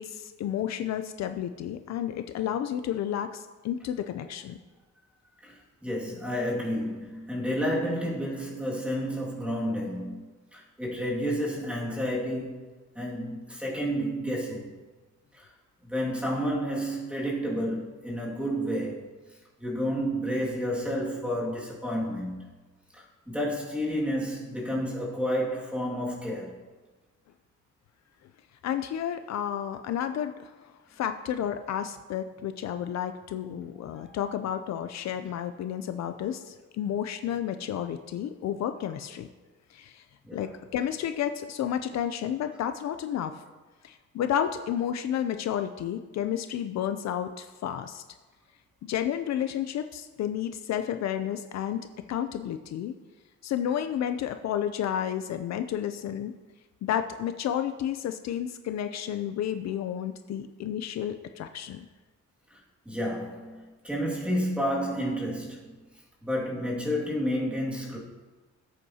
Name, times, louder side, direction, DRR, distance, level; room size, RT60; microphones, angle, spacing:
voice 1, 0.0-4.6 28.6-39.3 39.7-40.0 40.3-43.4 43.8-48.0 48.8-52.9 53.4-56.3 56.8-61.9, left 10 dB, 60° left, 8 dB, 0.5 m, -31 dB
voice 2, 5.4-14.8 15.3-15.5 15.8-22.5 22.9-26.6 33.9-34.2 40.3-40.5 62.5-62.6 62.9-65.8 66.2-68.0, equal, 5° right, -4 dB, 2.1 m, -31 dB
17.0 x 8.3 x 2.8 m, 1.3 s
cardioid pair, 165°, 30 cm